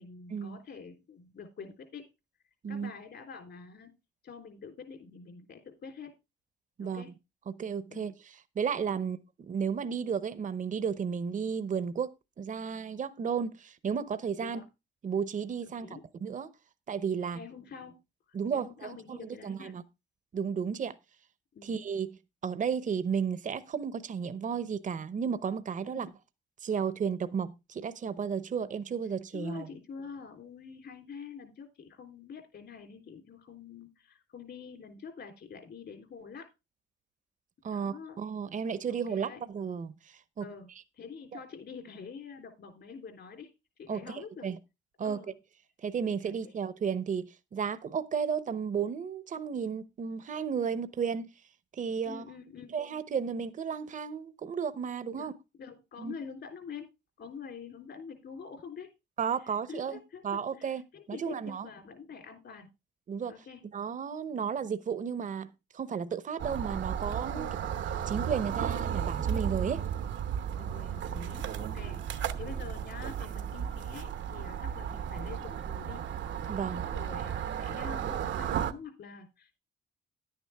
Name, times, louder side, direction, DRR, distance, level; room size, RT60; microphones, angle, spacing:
voice 1, 0.0-2.1 2.7-3.9 4.2-6.1 6.8-7.1 7.9-8.1 8.9-9.1 14.4-14.6 15.7-16.0 17.3-18.0 18.3-19.8 21.5-21.8 25.9-26.1 29.3-36.5 37.7-38.2 38.9-39.4 40.4-43.5 43.8-44.5 45.0-45.3 46.2-46.5 52.0-52.8 55.1-55.3 55.6-56.9 57.2-58.9 59.7-62.7 63.3-63.6 67.3-67.6 70.6-76.0 76.7-79.6, left 5 dB, 60° left, 3.4 m, -46 dB
voice 2, 7.5-8.1 8.6-14.6 15.0-16.5 16.9-17.4 18.3-19.2 19.4-19.8 20.3-20.9 21.6-22.1 22.4-26.1 26.6-29.7 37.6-40.5 43.9-44.0 44.4-44.6 45.0-45.2 45.8-51.3 51.7-52.2 52.7-55.3 56.0-56.1 59.2-60.0 60.2-60.8 61.1-61.7 63.1-63.3 63.7-65.5 65.7-67.5 68.1-69.8 76.5-76.9, right 6 dB, 40° right, 0.8 m, -33 dB
sound 1, 66.4-78.7, right 8 dB, 70° right, 0.9 m, -34 dB
10.5 x 9.5 x 3.5 m
cardioid pair, 90°, 20 cm